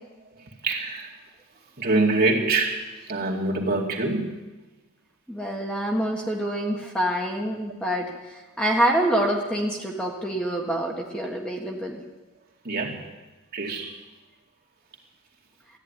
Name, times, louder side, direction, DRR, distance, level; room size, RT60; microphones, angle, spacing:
voice 1, 0.6-1.1 1.8-4.4 12.6-13.0 13.5-13.9, right 3 dB, 45° right, -1 dB, 2.4 m, -25 dB
voice 2, 5.3-8.1 8.6-12.0, right 1 dB, 5° left, 0 dB, 1.6 m, -26 dB
14.0 x 9.9 x 9.8 m, 1.1 s
head